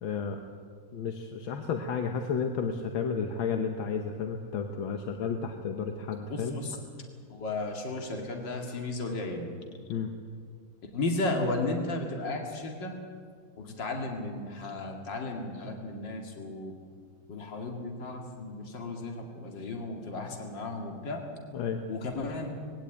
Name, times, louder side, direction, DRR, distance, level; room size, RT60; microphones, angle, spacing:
voice 1, 0.0-0.4 0.9-6.5 9.9-10.1 21.5-21.8, left 6 dB, 80° left, 5 dB, 1.9 m, -32 dB
voice 2, 6.3-6.8 7.3-9.5 10.9-13.0 13.6-16.7 17.3-21.3 21.9-22.5, left 2 dB, 65° left, 2 dB, 3.0 m, -34 dB
21.0 x 17.0 x 9.1 m, 2.1 s
omnidirectional pair, 2.2 m